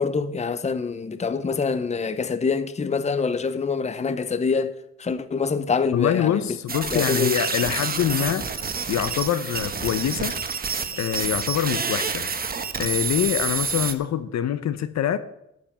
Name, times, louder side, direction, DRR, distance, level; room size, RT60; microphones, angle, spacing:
voice 1, 0.0-6.4 6.9-7.3, left 5 dB, 20° left, 0.8 m, -25 dB
voice 2, 5.9-10.4 11.0-12.3 12.8-15.2, left 10 dB, 65° left, 0.9 m, -25 dB
sound 1, 6.7-13.9, right 5 dB, 30° right, 1.1 m, -28 dB
12.5 x 5.4 x 8.7 m
cardioid pair, 90°, 30 cm